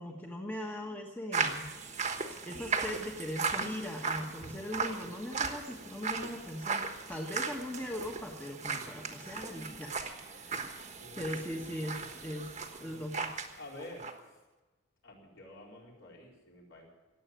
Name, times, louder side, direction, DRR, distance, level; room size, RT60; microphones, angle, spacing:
voice 1, 0.0-1.7 2.4-9.9 10.4-10.7 11.1-13.3, left 1 dB, 10° left, 0 dB, 1.4 m, -40 dB
sound 1, 1.3-13.5 13.8-14.1, right 5 dB, 30° right, 1.3 m, -37 dB
voice 2, 10.8-11.4 12.6-13.1 13.6-14.1 15.0-16.9, left 1 dB, 60° left, -2 dB, 4.3 m, -50 dB
17.5 x 8.1 x 9.1 m, 1.1 s
head